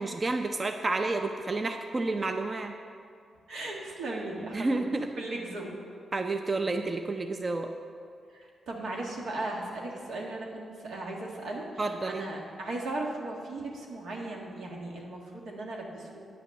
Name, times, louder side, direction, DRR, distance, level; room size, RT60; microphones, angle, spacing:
voice 1, 0.0-2.7 4.5-5.1 6.1-7.7 11.8-12.2, right 3 dB, 30° right, 6 dB, 0.5 m, -30 dB
voice 2, 3.5-4.8 5.1-5.7 8.3-16.2, right 2 dB, 85° right, -1 dB, 1.7 m, -37 dB
9.3 x 6.0 x 7.1 m, 2.3 s
cardioid pair, 105°, 0 cm